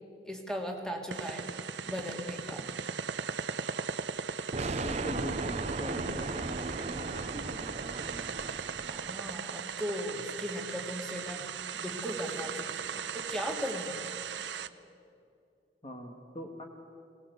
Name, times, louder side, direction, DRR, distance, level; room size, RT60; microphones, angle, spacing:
voice 1, 0.3-1.5 1.9-2.6 8.9-11.4 11.7-14.1, equal, 5° left, 2 dB, 2.5 m, -37 dB
sound 1, 1.1-14.7, right 6 dB, 85° right, 0.8 m, -38 dB
voice 2, 2.3-2.6 4.8-8.2 15.8-16.6, equal, 30° left, 2 dB, 1.7 m, -42 dB
sound 2, 4.5-9.4, right 3 dB, 35° right, 0.7 m, -37 dB
22.5 x 19.5 x 8.1 m, 2.5 s
head